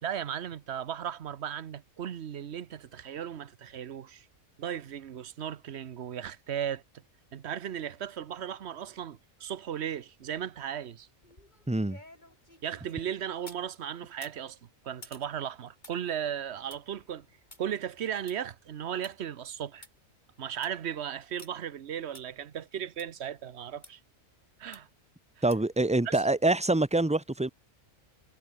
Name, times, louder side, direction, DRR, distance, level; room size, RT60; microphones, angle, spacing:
voice 1, 0.0-4.3 4.6-7.0 7.3-11.1 12.6-14.6 14.8-17.2 17.6-19.9 20.4-24.0 24.6-24.9 26.0-26.2, right 9 dB, 55° right, 1.0 m, -36 dB
sound 1, 11.2-13.7 14.1-19.1 19.5-19.6 19.8-19.9 20.4-20.8 21.4-21.5 22.1-22.2 23.0-23.1 23.8-23.9 24.7-25.0 25.5-25.8 26.2-26.3, left 2 dB, 35° left, 4.7 m, -53 dB
voice 2, 11.7-12.0 25.4-27.5, right 2 dB, 5° right, 0.7 m, -25 dB
omnidirectional pair, 1.4 m